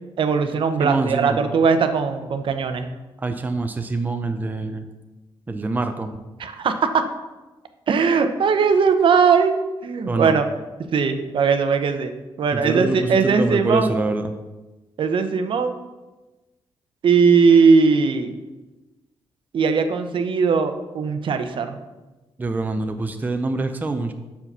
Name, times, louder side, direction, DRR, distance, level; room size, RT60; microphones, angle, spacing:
voice 1, 0.2-2.9 6.4-7.1 7.9-10.4 10.9-12.1 12.4-13.9 15.0-15.9 17.0-18.3 19.5-21.8, right 5 dB, 60° right, 8 dB, 0.6 m, -19 dB
voice 2, 0.8-1.4 3.2-4.9 5.5-6.1 10.1-10.3 12.5-14.3 22.4-24.1, right 3 dB, 20° right, 7 dB, 0.5 m, -25 dB
5.7 x 4.9 x 6.5 m, 1.1 s
cardioid pair, 115°, 10 cm